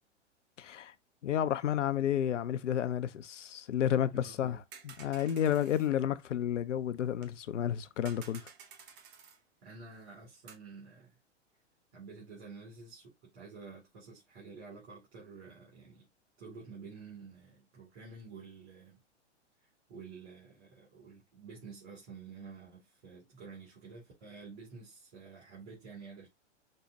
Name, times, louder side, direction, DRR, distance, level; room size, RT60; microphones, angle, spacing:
voice 1, 0.6-0.9 1.2-4.6 5.0-8.4, left 10 dB, 80° left, 0.5 m, -31 dB
voice 2, 4.1-4.6 9.6-11.2 11.9-16.1 16.4-19.0 19.6-26.3, right 4 dB, 55° right, 2.4 m, -50 dB
sound 1, 4.7-5.9 7.2-7.3 8.0-9.4 10.5-10.6, right 6 dB, 30° right, 0.7 m, -52 dB
5.2 x 2.1 x 2.7 m
figure-of-eight pair, 105°, 37 cm